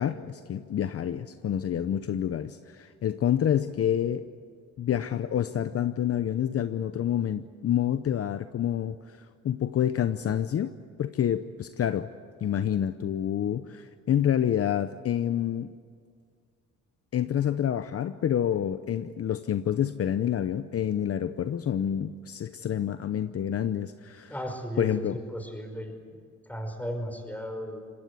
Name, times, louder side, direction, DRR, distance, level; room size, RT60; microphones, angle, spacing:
voice 1, 0.0-4.3 4.8-10.7 11.0-12.1 12.4-15.7 17.1-24.3 24.8-25.2, left 10 dB, 50° left, 11 dB, 0.8 m, -28 dB
voice 2, 24.3-26.2 26.5-27.8, equal, 5° left, 5 dB, 5.3 m, -35 dB
25.5 x 20.5 x 8.4 m, 2.1 s
cardioid pair, 90°, 30 cm